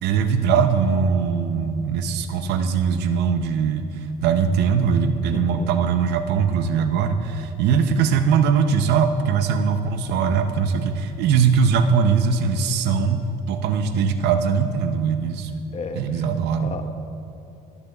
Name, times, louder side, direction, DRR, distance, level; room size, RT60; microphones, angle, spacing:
voice 1, 0.0-15.5 16.0-16.7, right 6 dB, 80° right, 8 dB, 0.6 m, -21 dB
voice 2, 5.3-5.7 15.7-16.3 16.6-16.9, left 4 dB, 40° left, 7 dB, 0.8 m, -33 dB
18.5 x 6.8 x 2.3 m, 2.8 s
cardioid pair, 110°, 17 cm